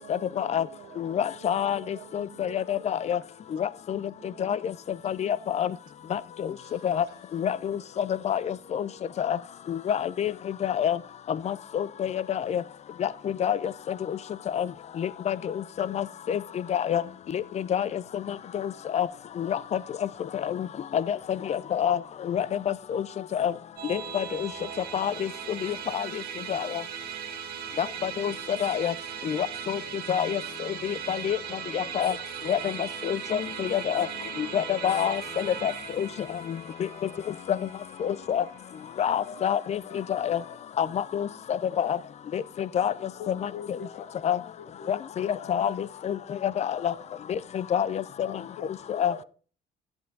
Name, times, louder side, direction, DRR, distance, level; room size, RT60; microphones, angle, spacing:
voice 1, 0.0-2.9 4.2-4.5, right 12 dB, 80° right, 1.0 m, -49 dB
voice 2, 1.0-1.8 2.1-3.2 3.6-4.0 4.4-4.6 5.0-5.7 6.1-6.2 6.8-7.0 7.3-8.9 9.2-9.4 9.7-10.3 10.6-11.0 11.5-12.6 13.0-13.1 13.4-13.6 14.5-14.7 15.0-15.4 15.8-16.4 16.7-17.0 17.3-17.4 17.7-17.9 18.5-19.1 19.4-19.6 20.4-20.6 20.9-21.2 21.5-22.0 22.3-22.5 22.9-23.0 23.3-23.5 23.9-24.5 24.9-25.3 25.6-26.1 26.5-26.7 27.8-28.3 28.6-28.9 29.3-29.8 30.1-30.4 30.8-31.4 31.7-32.1 32.5-32.6 33.0-34.1 34.5-35.7 36.0-36.1 37.5-37.6 38.0-38.4 39.0-39.8 40.1-40.4 40.8-41.3 41.8-42.0 42.3-42.4 42.7-42.9 43.3-43.5 44.2-44.4 44.9-45.7 46.0-46.2 46.4-46.9 47.5-48.0 49.0-49.1, left 9 dB, 40° left, 0.5 m, -27 dB
Musical instrument, 23.8-39.3, right 8 dB, 65° right, 1.9 m, -38 dB
voice 3, 39.3-39.6 39.9-40.2 40.5-40.6 41.6-41.8 43.2-44.1 44.6-45.5 46.7-47.0 48.2-49.2, left 6 dB, 80° left, 0.9 m, -44 dB
11.0 x 7.9 x 4.0 m
cardioid pair, 110°, 17 cm